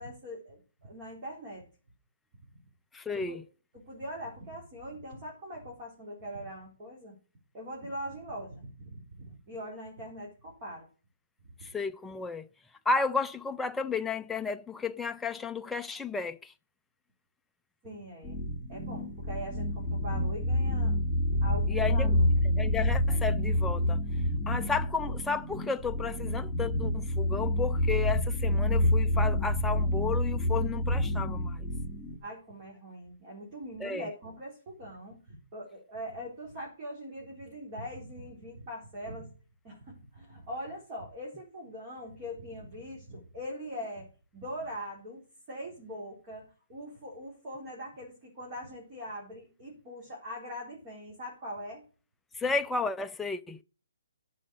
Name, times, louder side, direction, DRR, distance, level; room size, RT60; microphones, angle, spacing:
voice 1, 0.0-1.6 3.1-3.4 3.7-7.1 7.5-10.9 17.8-21.0 21.4-22.3 32.2-39.3 39.6-44.1 44.3-51.8, equal, 30° right, 3.9 m, -42 dB
voice 2, 2.9-3.4 11.6-12.5 12.9-16.5 21.7-22.2 22.6-24.0 24.5-31.6 33.8-34.1 52.3-53.6, left 4 dB, 5° left, 0.4 m, -33 dB
sound 1, 18.2-32.2, left 1 dB, 10° right, 2.4 m, -28 dB
10.0 x 6.4 x 6.4 m
hypercardioid pair, 155°, 0 cm